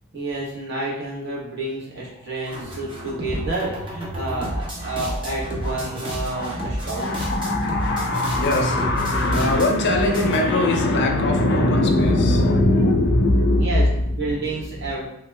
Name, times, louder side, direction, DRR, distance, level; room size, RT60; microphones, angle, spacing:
voice 1, 0.1-7.1 13.5-15.0, right 2 dB, 55° right, -5 dB, 0.9 m, -29 dB
sound 1, 2.5-10.4, equal, 25° right, 0.5 m, -31 dB
voice 2, 5.0-5.4 5.6-5.7 6.0-14.5 14.9-15.0, left 1 dB, 55° left, 2 dB, 0.4 m, -21 dB
2.9 x 2.2 x 3.1 m, 0.78 s
head